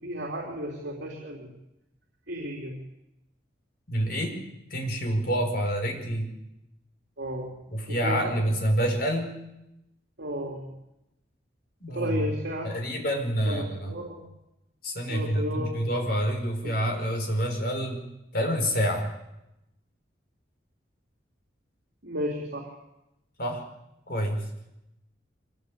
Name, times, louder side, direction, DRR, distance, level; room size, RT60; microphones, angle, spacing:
voice 1, 0.0-1.5 2.3-2.8 7.2-7.5 8.0-8.5 10.2-10.7 11.9-12.7 13.5-14.2 15.1-15.8 16.6-16.7 22.0-22.7, equal, 65° right, -1 dB, 3.9 m, -33 dB
voice 2, 3.9-4.4 4.7-6.3 7.7-9.4 11.8-12.3 12.6-13.9 14.8-18.0 18.3-19.1 23.4-23.6 24.1-24.4, equal, 55° left, 3 dB, 5.3 m, -27 dB
24.5 x 18.5 x 8.6 m, 0.90 s
head